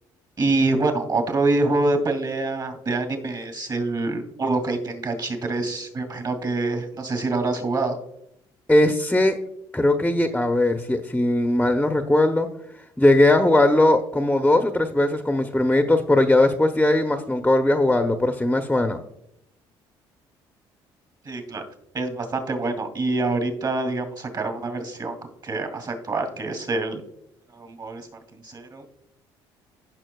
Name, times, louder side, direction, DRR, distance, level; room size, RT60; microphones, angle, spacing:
voice 1, 0.4-8.0 21.2-21.6 21.9-25.2 25.4-27.0 27.5-28.8, right 2 dB, 45° right, 6 dB, 2.4 m, -26 dB
voice 2, 8.7-9.4 9.7-12.5 13.0-19.0, left 1 dB, 5° left, 6 dB, 0.8 m, -19 dB
15.5 x 6.0 x 2.3 m, 0.77 s
supercardioid pair, 80°, 10 cm